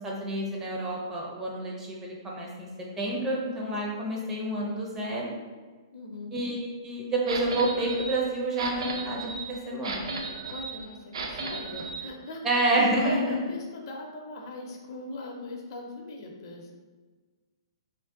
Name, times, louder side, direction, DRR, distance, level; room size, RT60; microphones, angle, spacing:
voice 1, 0.0-2.7 3.0-5.3 6.3-10.0 12.4-13.4, right 1 dB, 15° right, -3 dB, 0.4 m, -29 dB
voice 2, 5.9-6.3 10.2-12.4 13.0-16.8, left 2 dB, 50° left, 1 dB, 0.5 m, -40 dB
sound 1, 7.3-12.1, right 3 dB, 75° right, 0.4 m, -36 dB
2.5 x 2.1 x 3.5 m, 1.4 s
hypercardioid pair, 155°, 3 cm